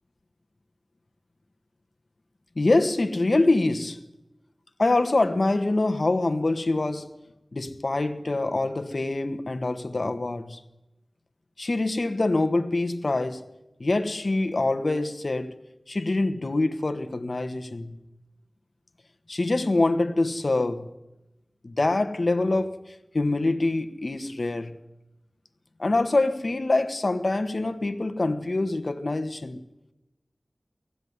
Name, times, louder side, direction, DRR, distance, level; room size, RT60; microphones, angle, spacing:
voice 1, 2.5-4.0 4.8-7.1 7.5-10.6 11.6-13.4 13.8-15.6 15.9-18.0 19.3-20.9 21.6-24.8 25.8-29.6, left 2 dB, 60° left, 1.3 m, -25 dB
19.0 x 15.5 x 9.6 m
wide cardioid pair, 45°, 0 cm